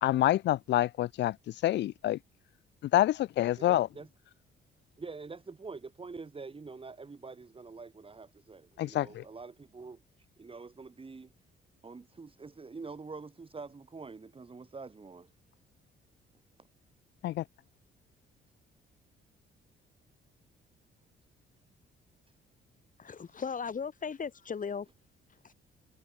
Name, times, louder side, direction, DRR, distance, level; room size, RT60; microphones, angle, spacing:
voice 1, 0.0-1.4 1.6-2.2 2.9-3.9 8.8-9.2 17.2-17.4, left 14 dB, 65° left, 0.4 m, -27 dB
voice 2, 3.6-4.1 5.0-10.0 10.4-11.3 11.8-15.3, right 4 dB, 25° right, 4.1 m, -45 dB
voice 3, 23.0-24.9, left 6 dB, 40° left, 5.9 m, -37 dB
cardioid pair, 90°, 20 cm